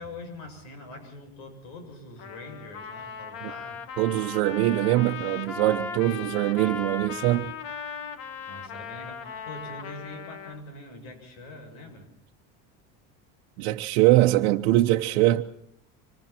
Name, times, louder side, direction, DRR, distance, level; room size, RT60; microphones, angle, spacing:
voice 1, 0.0-3.8 5.8-6.2 8.4-12.1, left 2 dB, 80° left, 7.7 m, -43 dB
Trumpet, 2.2-10.6, left 6 dB, 45° left, 1.7 m, -38 dB
voice 2, 4.0-7.5 13.6-15.4, right 16 dB, 85° right, 1.0 m, -22 dB
26.0 x 25.5 x 4.5 m
cardioid pair, 155°, 31 cm